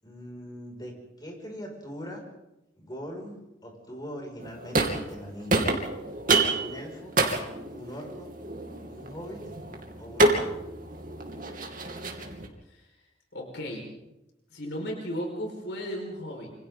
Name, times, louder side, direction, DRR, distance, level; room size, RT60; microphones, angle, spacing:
voice 1, 0.0-2.2 2.8-5.6 6.5-7.1 7.7-8.3 8.9-9.4 10.0-10.6, equal, 25° left, 0 dB, 6.1 m, -41 dB
sound 1, 4.4-5.2 5.5-12.5, right 2 dB, 50° right, 2.9 m, -28 dB
voice 2, 13.3-13.9 14.5-16.5, equal, 75° left, 1 dB, 5.0 m, -35 dB
27.0 x 26.0 x 3.9 m, 0.92 s
head